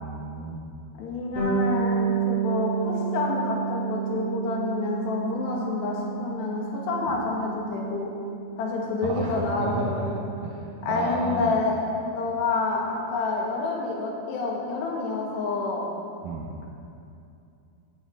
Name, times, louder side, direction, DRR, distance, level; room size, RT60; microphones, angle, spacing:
voice 1, 0.0-0.6 7.1-7.2 9.0-11.6 16.2-16.5, right 3 dB, 80° right, -1 dB, 1.9 m, -32 dB
voice 2, 1.0-8.1 8.6-10.2 10.8-11.9 12.1-15.9, left 3 dB, 75° left, -2 dB, 3.8 m, -28 dB
Bass guitar, 1.4-11.0, right 6 dB, 50° right, 4.1 m, -31 dB
14.0 x 13.5 x 3.7 m, 2.6 s
omnidirectional pair, 5.0 m